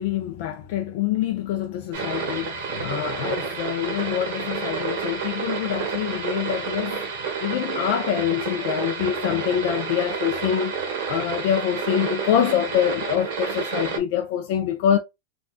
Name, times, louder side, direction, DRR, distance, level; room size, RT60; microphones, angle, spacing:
voice 1, 0.0-7.1 7.4-10.8 11.1-15.0, left 10 dB, 45° left, 0.4 m, -25 dB
sound 1, 1.9-14.0, right 5 dB, 55° right, 1.1 m, -29 dB
3.6 x 2.3 x 2.4 m
supercardioid pair, 175°, 0 cm